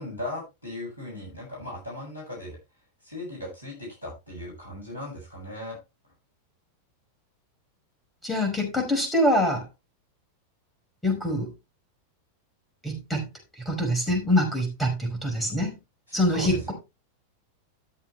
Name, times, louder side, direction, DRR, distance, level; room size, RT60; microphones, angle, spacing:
voice 1, 0.0-2.6 3.0-5.8 16.1-16.7, left 1 dB, 90° right, -3 dB, 6.4 m, -37 dB
voice 2, 8.2-9.6 11.0-11.5 12.8-13.2 13.6-15.8 16.1-16.7, equal, 5° left, 2 dB, 5.3 m, -25 dB
13.5 x 7.2 x 3.2 m, 0.25 s
figure-of-eight pair, 90°, 0 cm